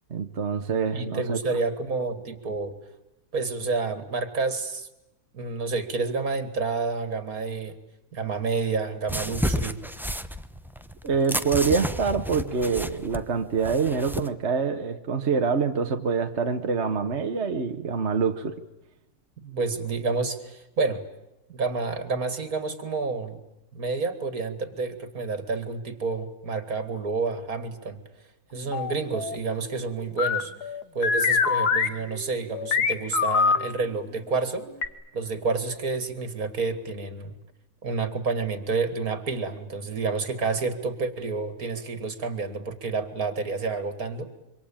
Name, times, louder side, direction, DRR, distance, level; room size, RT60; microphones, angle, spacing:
voice 1, 0.1-1.4 11.0-18.6, right 5 dB, 45° right, 5 dB, 1.5 m, -25 dB
voice 2, 0.9-2.7 3.3-4.9 5.3-7.7 8.1-9.8 19.4-21.0 21.5-23.4 23.7-28.0 28.5-34.7 35.1-37.3 37.8-44.4, right 4 dB, 65° right, 12 dB, 2.7 m, -29 dB
sound 1, 9.1-14.3, equal, ahead, 0.7 m, -31 dB
sound 2, 28.7-29.4 30.2-33.6 34.8-34.9, left 5 dB, 85° left, 2.1 m, -24 dB
26.5 x 24.5 x 8.8 m, 0.92 s
omnidirectional pair, 1.6 m